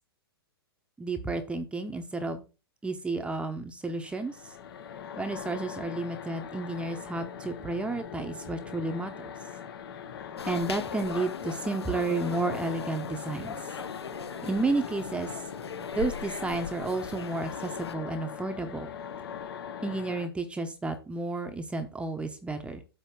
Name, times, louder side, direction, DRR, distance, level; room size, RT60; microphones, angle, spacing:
voice 1, 1.0-2.4 2.8-4.3 5.2-9.3 10.4-13.6 14.4-15.3 15.9-18.9 19.8-22.8, right 3 dB, 10° right, 7 dB, 0.8 m, -32 dB
sound 1, 3.9-20.3, left 7 dB, 65° left, 1.0 m, -41 dB
sound 2, 10.4-17.9, left 6 dB, 85° left, 0.6 m, -39 dB
8.3 x 3.0 x 6.0 m, 0.31 s
hypercardioid pair, 115°, 13 cm